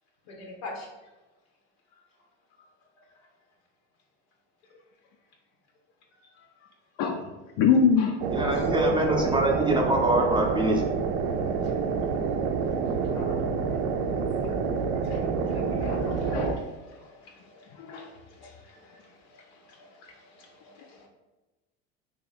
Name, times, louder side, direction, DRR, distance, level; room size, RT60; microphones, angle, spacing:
voice 1, 0.3-0.9 15.0-19.0 19.3-21.1, left 2 dB, 85° left, 0 dB, 1.1 m, -45 dB
voice 2, 7.6-8.6 13.2-13.4 15.9-16.6 17.8-18.1, left 6 dB, 60° left, 2 dB, 0.5 m, -25 dB
sound 1, 8.2-16.5, right 5 dB, 90° right, 0.5 m, -28 dB
voice 3, 8.3-10.9, right 1 dB, 15° right, 0 dB, 0.5 m, -24 dB
3.0 x 2.8 x 4.0 m, 1.1 s
supercardioid pair, 105°, 32 cm